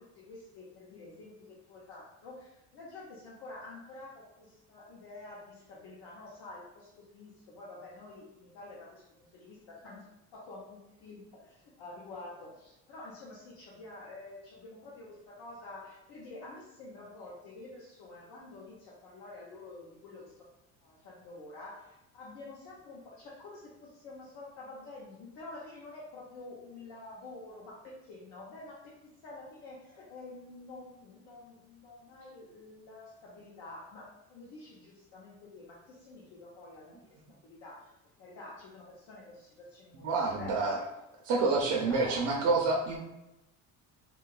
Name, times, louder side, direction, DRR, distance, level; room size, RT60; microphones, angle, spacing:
voice 1, 0.0-20.5 20.8-37.9 38.2-40.9 41.3-42.5, left 2 dB, 80° left, -6 dB, 0.7 m, -48 dB
voice 2, 39.9-40.8 41.3-43.0, right 3 dB, 70° right, -2 dB, 0.5 m, -28 dB
2.8 x 2.3 x 2.3 m, 0.95 s
cardioid pair, 135°, 33 cm